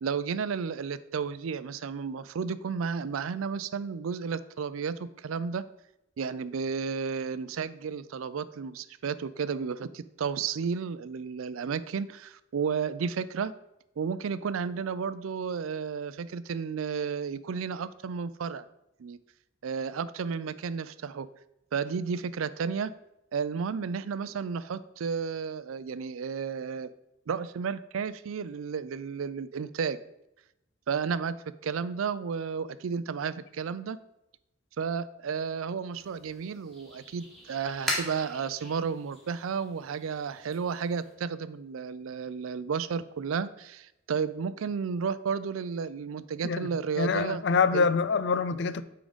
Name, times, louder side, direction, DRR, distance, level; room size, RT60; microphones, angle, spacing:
voice 1, 0.0-5.6 6.2-13.5 14.0-18.7 19.0-19.2 19.6-21.3 21.7-22.9 23.3-26.9 27.3-30.0 30.9-31.4 31.6-34.0 34.8-47.4 47.7-47.9, right 6 dB, 90° right, 0.4 m, -32 dB
sound 1, 35.9-41.1, equal, ahead, 1.9 m, -40 dB
voice 2, 47.0-48.8, left 5 dB, 60° left, 0.4 m, -25 dB
8.8 x 3.8 x 5.0 m
head